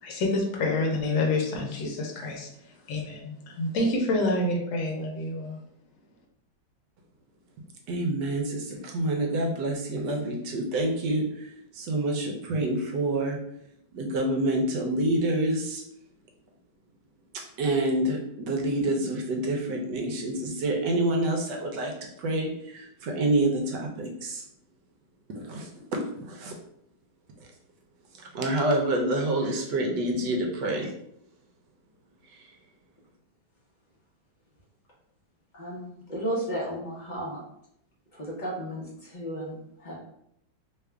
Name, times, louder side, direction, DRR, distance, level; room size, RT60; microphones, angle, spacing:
voice 1, 0.0-5.6, left 2 dB, 75° left, 0 dB, 1.5 m, -28 dB
voice 2, 7.9-13.4 13.9-15.8 17.6-24.4 25.3-26.5 28.2-30.9 32.3-32.5, right 1 dB, 70° right, 2 dB, 1.2 m, -27 dB
voice 3, 35.5-37.4 38.1-40.0, right 1 dB, 35° left, -5 dB, 0.7 m, -34 dB
3.4 x 2.3 x 3.3 m, 0.73 s
omnidirectional pair, 2.1 m